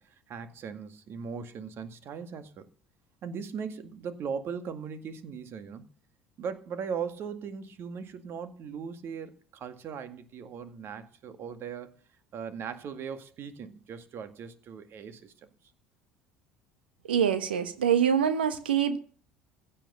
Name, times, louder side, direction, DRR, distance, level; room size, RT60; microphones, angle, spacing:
voice 1, 0.0-2.7 3.2-5.9 6.4-12.0 12.3-15.3, right 6 dB, 45° right, 2.0 m, -39 dB
voice 2, 17.1-19.0, right 8 dB, 80° right, 1.3 m, -25 dB
16.0 x 8.8 x 6.8 m
figure-of-eight pair, 65°, 5 cm